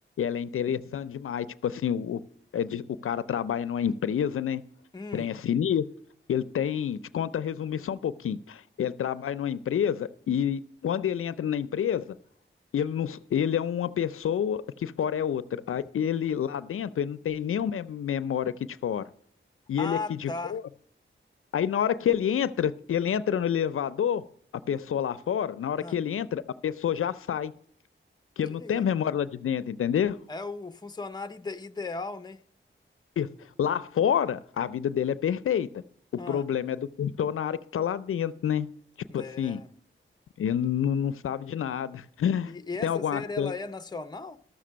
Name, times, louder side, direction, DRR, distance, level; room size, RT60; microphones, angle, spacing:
voice 1, 0.2-2.2 2.5-4.6 5.1-5.8 6.3-12.2 12.7-18.5 18.8-19.0 19.7-20.6 21.5-24.2 24.7-27.5 28.4-30.2 33.2-33.3 33.6-35.8 36.3-38.7 39.1-39.6 40.4-42.5 42.8-43.5, left 9 dB, 85° left, 0.4 m, -28 dB
voice 2, 4.9-5.3 19.8-20.6 25.8-26.0 28.5-28.8 30.3-32.4 36.2-36.5 39.1-39.7 42.5-44.4, left 3 dB, 20° left, 0.5 m, -37 dB
13.0 x 6.7 x 6.2 m
wide cardioid pair, 120°, 21 cm